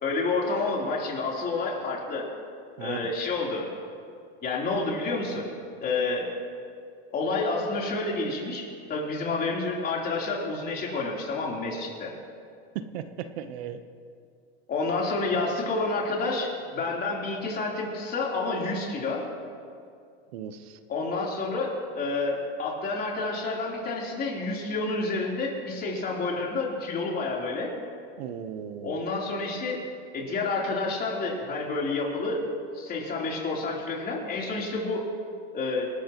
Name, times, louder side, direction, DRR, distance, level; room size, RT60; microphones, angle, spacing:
voice 1, 0.0-2.2 2.8-3.7 4.4-5.5 5.8-6.3 7.1-12.1 14.7-19.2 20.9-27.7 28.8-29.8 30.1-32.4 32.7-35.0 35.5-35.9, left 3 dB, 30° left, -3 dB, 3.7 m, -29 dB
voice 2, 2.8-3.1 12.7-13.8 20.3-20.8 28.2-29.0, right 9 dB, 70° right, 9 dB, 1.0 m, -37 dB
27.0 x 12.5 x 3.1 m, 2.3 s
supercardioid pair, 130°, 32 cm